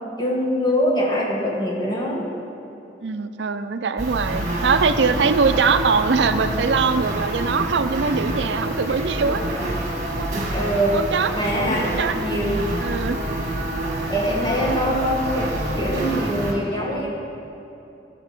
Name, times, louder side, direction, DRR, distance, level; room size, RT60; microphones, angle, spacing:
voice 1, 0.2-2.3 8.9-9.0 9.3-9.6 10.5-11.0 11.3-12.6 14.1-17.1, equal, 25° left, -4 dB, 1.8 m, -23 dB
voice 2, 3.0-9.4 10.2-10.3 10.9-11.3 11.8-12.2 12.8-13.2, right 5 dB, 85° right, 10 dB, 0.5 m, -22 dB
sound 1, 4.0-16.5, right 1 dB, 45° right, 1.6 m, -27 dB
13.5 x 5.8 x 6.0 m, 2.9 s
head